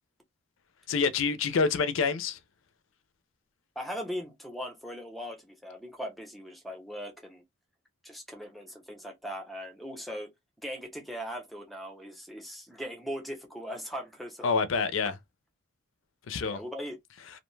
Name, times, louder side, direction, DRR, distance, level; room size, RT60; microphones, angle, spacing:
voice 1, 0.9-2.4 14.4-15.1 16.3-16.6, left 5 dB, 65° left, 0.4 m, -27 dB
voice 2, 3.8-7.4 8.0-10.3 10.6-14.5 16.4-17.0, equal, ahead, 0.6 m, -39 dB
2.6 x 2.1 x 3.1 m
head